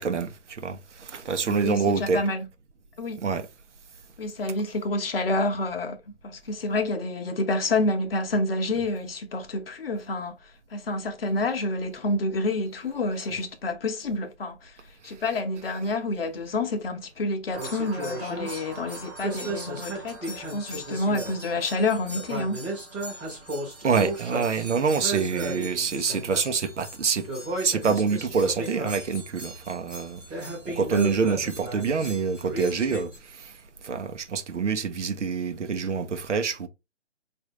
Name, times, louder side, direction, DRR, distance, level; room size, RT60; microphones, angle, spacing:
voice 1, 0.0-2.2 3.2-3.5 23.8-27.3 27.6-33.5 33.8-36.7, right 5 dB, 80° right, 0.8 m, -26 dB
voice 2, 1.4-2.5 3.0-3.2 4.2-6.0 6.2-10.4 10.7-14.7 15.0-22.6, left 2 dB, 55° left, 0.9 m, -28 dB
sound 1, 17.5-33.2, right 1 dB, 10° right, 1.0 m, -35 dB
5.0 x 2.7 x 3.1 m
hypercardioid pair, 160°, 35 cm